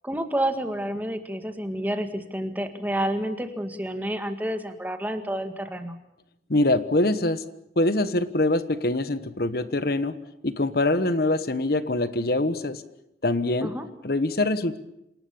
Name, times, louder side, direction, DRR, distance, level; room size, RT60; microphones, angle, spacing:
voice 1, 0.0-6.0 13.6-13.9, right 1 dB, 10° right, 7 dB, 1.9 m, -29 dB
voice 2, 6.5-7.4 7.8-10.2 10.4-12.8 13.2-13.7 14.0-14.8, left 2 dB, 55° left, 12 dB, 1.2 m, -24 dB
28.0 x 19.0 x 7.1 m, 0.84 s
head